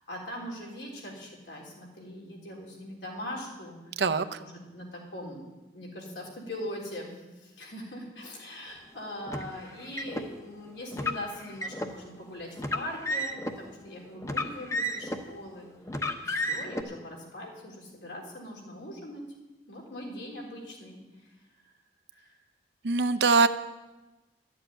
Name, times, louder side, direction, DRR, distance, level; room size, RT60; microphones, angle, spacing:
voice 1, 0.0-4.1 4.4-5.4 5.7-15.7 16.2-19.2 19.7-21.3 21.6-21.7 22.1-22.4, left 1 dB, 80° left, -1 dB, 3.7 m, -41 dB
voice 2, 4.0-4.4 22.8-23.5, right 4 dB, 75° right, 9 dB, 0.7 m, -23 dB
Car, 9.3-10.3 10.9-11.9 12.6-13.6 14.2-15.3 15.9-16.8, left 1 dB, 15° left, 0.8 m, -32 dB
12.5 x 7.4 x 9.1 m, 1.1 s
head